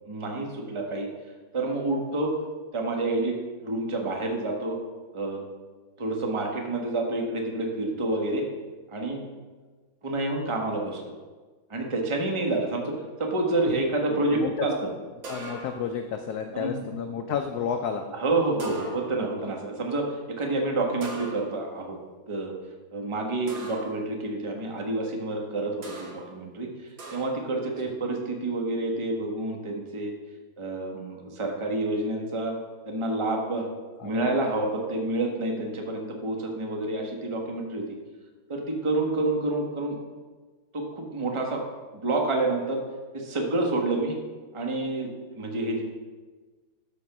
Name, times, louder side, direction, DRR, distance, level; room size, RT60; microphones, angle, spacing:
voice 1, 0.1-1.1 1.5-2.4 2.7-3.4 3.6-4.8 5.1-5.4 6.0-8.4 8.9-9.2 10.0-11.1 11.7-12.9 13.2-14.9 16.5-16.8 18.1-22.0 22.3-22.5 22.9-26.7 27.1-30.1 30.6-32.5 32.8-33.7 34.0-37.9 38.5-40.0 40.7-41.6 41.9-42.8 43.1-44.2 44.5-45.8, right 2 dB, 20° right, 1 dB, 1.0 m, -28 dB
sound 1, 15.2-16.0 18.6-19.3 21.0-21.8 23.5-24.1 25.8-26.3 27.0-27.5, right 2 dB, 70° right, 2.3 m, -40 dB
voice 2, 15.3-18.0 34.0-34.3, left 7 dB, 70° left, 6 dB, 1.0 m, -31 dB
12.5 x 4.6 x 5.9 m, 1.4 s
omnidirectional pair, 2.1 m